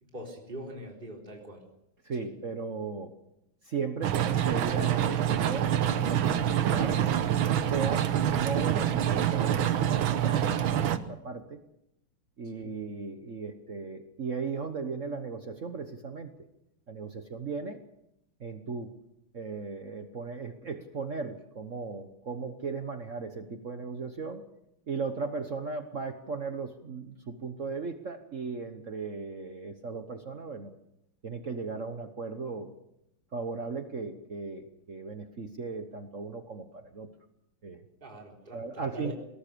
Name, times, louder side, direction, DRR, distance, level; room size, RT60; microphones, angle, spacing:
voice 1, 0.0-1.6 2.2-2.3 12.5-12.7 38.0-39.1, equal, 20° right, 0 dB, 4.1 m, -43 dB
voice 2, 2.0-3.1 3.6-7.1 7.6-11.6 12.4-16.3 16.9-17.8 18.4-18.9 19.3-24.4 24.9-30.7 31.2-32.7 33.3-37.1 37.6-37.8 38.5-39.1, right 4 dB, 40° right, 8 dB, 1.3 m, -37 dB
sound 1, 4.0-11.0, right 10 dB, 70° right, 1.8 m, -26 dB
21.5 x 18.5 x 6.9 m, 0.80 s
omnidirectional pair, 2.4 m